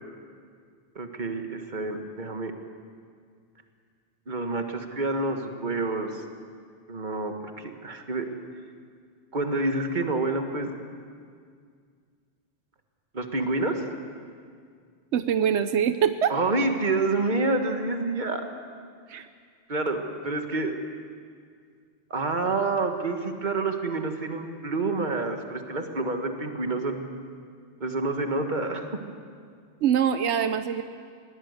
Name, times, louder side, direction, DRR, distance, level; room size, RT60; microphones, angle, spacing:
voice 1, 1.0-2.5 4.3-6.2 6.9-8.3 9.3-10.7 13.1-14.0 16.3-18.4 19.7-20.7 22.1-27.1 27.8-28.9, right 3 dB, 45° right, 5 dB, 1.7 m, -28 dB
voice 2, 15.1-16.3 19.1-19.3 29.8-30.8, right 8 dB, 85° right, 10 dB, 1.0 m, -23 dB
21.0 x 16.5 x 8.1 m, 2.1 s
omnidirectional pair, 1.1 m